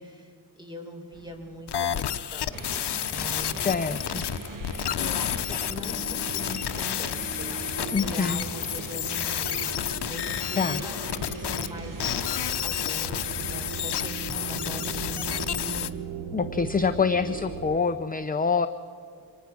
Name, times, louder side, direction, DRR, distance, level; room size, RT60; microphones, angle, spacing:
voice 1, 0.0-3.8 5.0-15.9, left 1 dB, 10° right, 3 dB, 4.3 m, -42 dB
sound 1, 1.1-17.8, right 7 dB, 80° right, 1.1 m, -40 dB
sound 2, 1.7-11.7 12.0-15.9, left 10 dB, 75° left, 0.8 m, -30 dB
sound 3, 2.5-15.6, right 3 dB, 50° right, 1.9 m, -41 dB
voice 2, 3.6-4.2 7.9-8.4 10.6-10.8 16.3-18.7, left 5 dB, 20° left, 10 dB, 0.6 m, -25 dB
25.0 x 19.0 x 6.1 m, 2.5 s
cardioid pair, 85°, 40 cm